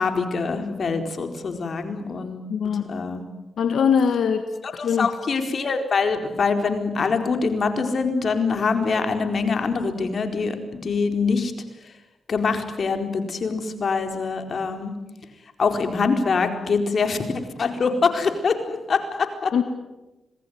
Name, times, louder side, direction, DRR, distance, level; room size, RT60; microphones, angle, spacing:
voice 1, 0.0-2.5 2.9-3.2 4.6-10.6 10.8-11.5 12.3-14.9 15.6-17.2 17.6-19.5, left 4 dB, 60° left, 6 dB, 4.4 m, -24 dB
voice 2, 2.5-2.8 3.6-4.4 4.8-5.1 19.5-19.6, left 7 dB, 80° left, 7 dB, 1.8 m, -21 dB
27.0 x 20.0 x 9.6 m, 1.0 s
cardioid pair, 60°, 0 cm